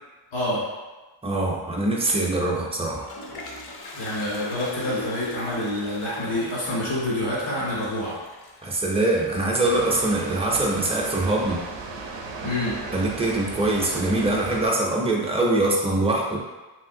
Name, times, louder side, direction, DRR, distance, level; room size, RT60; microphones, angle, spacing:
voice 1, 0.3-0.6 3.9-8.2 12.4-12.7, left 1 dB, 80° left, -9 dB, 1.5 m, -27 dB
voice 2, 1.2-3.0 8.6-11.6 12.9-16.4, right 2 dB, 15° right, -2 dB, 0.4 m, -23 dB
Toilet flush, 2.6-11.5, left 1 dB, 55° left, 0.5 m, -42 dB
Water, 9.6-14.7, right 3 dB, 70° right, 0.5 m, -36 dB
3.1 x 2.7 x 2.6 m, 1.2 s
wide cardioid pair, 125°, 46 cm